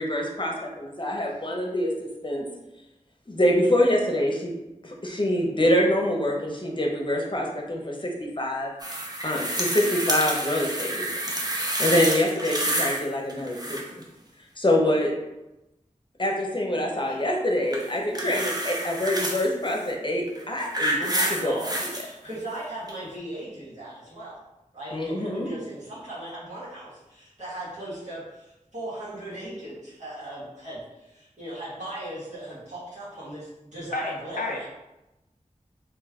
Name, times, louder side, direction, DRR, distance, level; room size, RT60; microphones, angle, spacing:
voice 1, 0.0-2.5 3.3-4.5 4.8-8.7 9.2-11.1 11.5-13.8 14.6-15.1 16.2-21.6 24.9-25.5, left 1 dB, 35° left, 0 dB, 0.8 m, -25 dB
sound 1, 8.8-13.0 13.3-14.0 17.7-19.5 20.3-22.0 22.9-23.0, right 1 dB, 30° right, 0.7 m, -28 dB
voice 2, 18.2-18.7 21.0-24.4 24.7-34.7, right 1 dB, 60° right, -10 dB, 1.5 m, -38 dB
voice 3, 33.9-34.7, left 3 dB, 85° left, 1 dB, 0.4 m, -32 dB
3.1 x 3.1 x 3.6 m, 0.96 s
wide cardioid pair, 45°, 14 cm